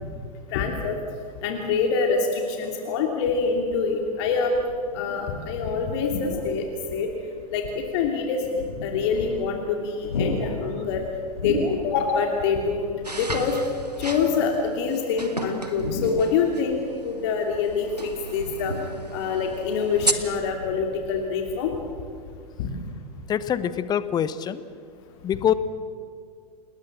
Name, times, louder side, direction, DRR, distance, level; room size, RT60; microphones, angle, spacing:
voice 1, 0.5-1.0 1.4-4.6 4.9-7.1 7.5-11.0 11.4-13.6 14.0-18.7 19.1-21.7 22.6-22.7, left 5 dB, 45° left, 2 dB, 2.9 m, -25 dB
sound 1, 4.7-5.3 5.9-6.7 7.3-7.4 8.4-9.6 9.9-12.2 12.5-12.7 13.9-14.7 15.7-16.7 17.7-19.1 19.6-21.3 21.6-21.8, left 2 dB, 65° left, 4.8 m, -34 dB
sound 2, 13.0-20.1, right 2 dB, 85° right, 1.7 m, -34 dB
voice 2, 23.3-24.6 25.2-25.5, left 9 dB, 20° left, 15 dB, 0.9 m, -24 dB
28.0 x 20.5 x 7.5 m, 2.2 s
figure-of-eight pair, 100°, 20 cm